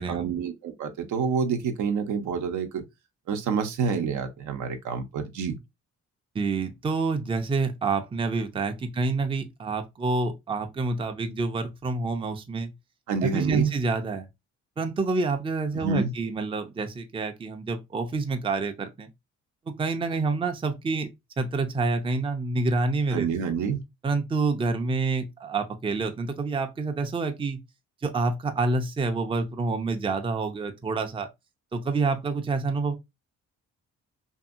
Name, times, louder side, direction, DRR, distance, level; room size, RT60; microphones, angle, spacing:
voice 1, 0.1-2.8 3.3-5.6 13.1-13.7 15.7-16.1 23.1-23.8, right 6 dB, 75° right, 0.7 m, -28 dB
voice 2, 6.3-12.7 13.2-14.3 14.8-19.1 19.7-21.1 21.4-23.3 24.0-27.6 28.0-31.3 31.7-33.0, right 3 dB, 20° right, 0.5 m, -27 dB
2.7 x 2.6 x 2.4 m
cardioid pair, 90°, 30 cm